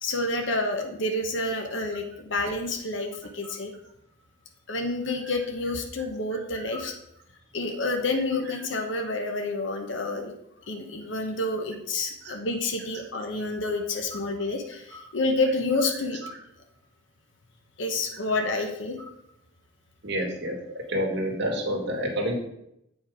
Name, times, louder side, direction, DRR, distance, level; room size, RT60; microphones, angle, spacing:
voice 1, 0.0-3.7 4.7-6.9 7.5-10.3 10.7-16.2 17.8-19.0, left 2 dB, 70° left, 4 dB, 1.0 m, -29 dB
voice 2, 6.3-6.9 7.9-8.0 8.5-8.6 12.2-12.4 14.1-14.2 14.9-15.0 15.7-16.4 18.4-18.5 19.0-19.1 20.0-20.5 20.9-22.3, equal, 60° right, -1 dB, 2.2 m, -31 dB
7.9 x 5.2 x 5.0 m, 0.78 s
head